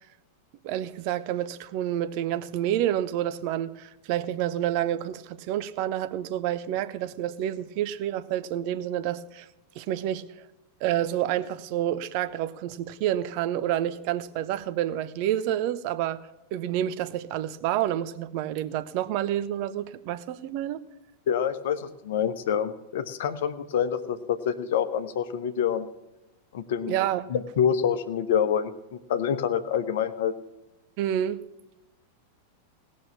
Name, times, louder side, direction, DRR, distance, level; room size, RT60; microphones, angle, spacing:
voice 1, 0.6-9.5 9.8-10.3 10.8-16.2 16.5-20.8 26.9-27.3 31.0-31.4, right 12 dB, 45° right, 0.7 m, -29 dB
voice 2, 21.3-25.9 26.5-26.9 27.3-30.3, left 8 dB, 55° left, 0.9 m, -27 dB
18.0 x 6.3 x 7.0 m
figure-of-eight pair, 90°, 0 cm